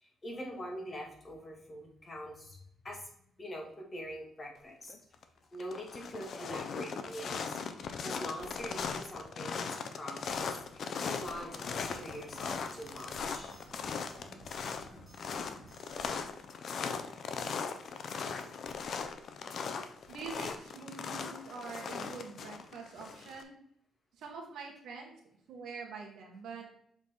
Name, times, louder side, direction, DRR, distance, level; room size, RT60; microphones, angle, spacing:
voice 1, 0.2-2.6 2.8-3.0 3.4-4.9 5.5-9.7 10.0-10.4 10.9-11.5 11.8-13.6, equal, 30° left, 0 dB, 1.9 m, -43 dB
sound 1, 4.9-5.2 5.5-23.4, left 5 dB, 60° left, 0.7 m, -39 dB
sound 2, 10.7-16.2, right 1 dB, ahead, 2.7 m, -54 dB
voice 2, 20.1-23.6 24.1-25.1 25.5-26.7, right 4 dB, 75° right, 1 dB, 1.6 m, -45 dB
7.1 x 4.1 x 3.6 m, 0.66 s
cardioid pair, 90°, 0 cm